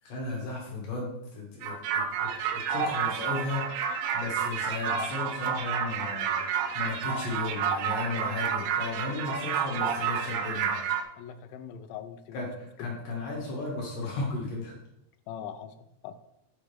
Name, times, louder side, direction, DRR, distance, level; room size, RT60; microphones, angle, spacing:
voice 1, 0.0-6.4 6.7-10.8 12.3-14.8, left 3 dB, 55° left, -3 dB, 2.6 m, -35 dB
sound 1, 1.6-11.0, right 7 dB, 85° right, 3.1 m, -30 dB
voice 2, 11.2-12.5 12.8-12.9 15.3-16.1, left 9 dB, 90° left, 11 dB, 3.3 m, -42 dB
7.2 x 6.2 x 3.4 m, 0.83 s
omnidirectional pair, 5.8 m